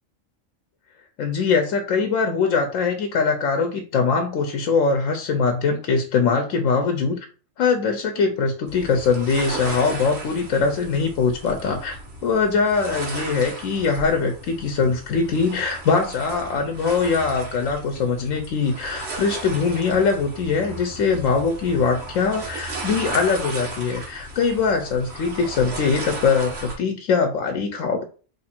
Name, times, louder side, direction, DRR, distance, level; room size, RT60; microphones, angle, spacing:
voice 1, 1.2-7.2 7.6-28.0, left 5 dB, 90° left, 5 dB, 1.0 m, -22 dB
sound 1, 8.7-26.8, right 2 dB, 60° right, 1.3 m, -35 dB
3.1 x 2.4 x 4.3 m, 0.37 s
omnidirectional pair, 1.3 m